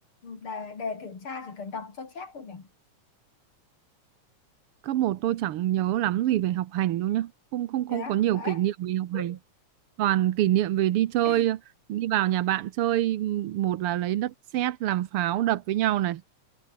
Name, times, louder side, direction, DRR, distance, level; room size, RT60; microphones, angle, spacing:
voice 1, 0.2-2.7 7.9-8.6 9.1-9.4 11.2-11.5, left 4 dB, 45° left, 4.1 m, -37 dB
voice 2, 4.8-9.4 10.0-11.6 11.9-16.2, right 13 dB, 70° right, 1.4 m, -26 dB
omnidirectional pair, 3.5 m